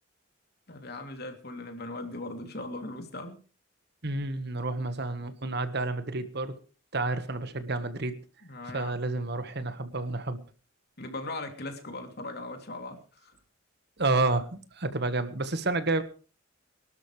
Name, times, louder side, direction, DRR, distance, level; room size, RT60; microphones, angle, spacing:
voice 1, 0.7-3.4 8.4-9.0 11.0-13.3, left 2 dB, 50° left, 5 dB, 3.0 m, -39 dB
voice 2, 4.0-6.5 6.9-8.2 8.7-10.4 14.0-16.0, right 2 dB, 55° right, 11 dB, 1.5 m, -30 dB
23.5 x 12.5 x 3.3 m, 0.36 s
head